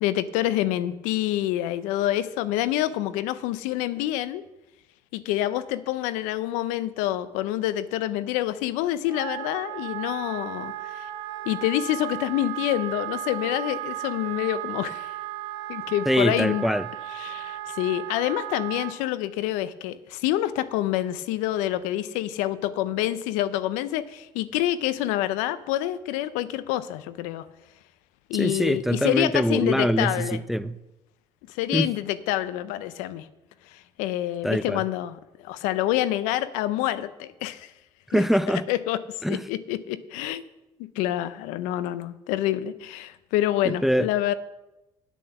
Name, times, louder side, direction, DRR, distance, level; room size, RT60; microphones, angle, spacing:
voice 1, 0.0-4.4 5.1-11.1 11.5-15.1 15.7-16.6 17.2-27.5 28.3-30.4 31.5-33.3 33.7-37.7 38.1-38.2 38.7-39.0 39.3-40.4 41.0-44.3, left 13 dB, 85° left, 0.5 m, -27 dB
Wind instrument woodwind instrument, 9.0-18.9, right 13 dB, 85° right, 1.6 m, -35 dB
voice 2, 16.1-16.8 28.3-30.8 31.7-31.9 34.4-34.8 38.1-38.6 39.2-39.4 43.6-44.1, equal, ahead, 0.4 m, -23 dB
8.5 x 7.1 x 6.8 m
supercardioid pair, 80°, 13 cm